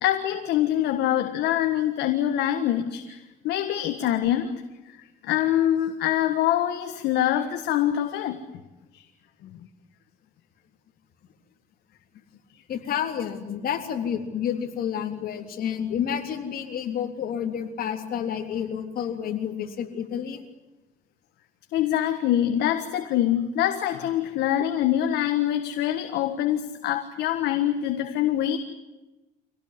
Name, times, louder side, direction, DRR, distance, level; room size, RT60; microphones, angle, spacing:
voice 1, 0.0-4.5 5.2-8.4 8.9-9.0 9.4-9.5 21.7-28.6, left 11 dB, 80° left, 8 dB, 1.6 m, -24 dB
voice 2, 12.7-20.4, left 8 dB, 60° left, 5 dB, 3.6 m, -30 dB
26.0 x 18.0 x 9.7 m, 1.1 s
cardioid pair, 110°, 17 cm